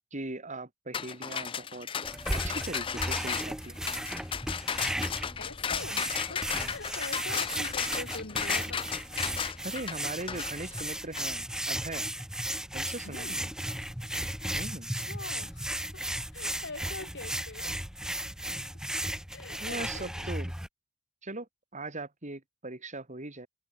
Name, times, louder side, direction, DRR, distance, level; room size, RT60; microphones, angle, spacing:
voice 1, 0.1-1.9 2.3-3.9 9.6-12.1 12.7-13.5 14.5-14.9 19.6-20.5 21.2-23.5, right 2 dB, 35° right, 3.3 m, -40 dB
sound 1, 0.9-11.3, left 7 dB, 25° left, 0.4 m, -34 dB
sound 2, 2.0-20.7, right 1 dB, 5° right, 1.5 m, -35 dB
voice 2, 5.4-8.8 13.0-13.4 14.9-16.0 16.3-17.8 18.6-18.7 19.3-20.3, left 3 dB, 55° left, 2.9 m, -44 dB
head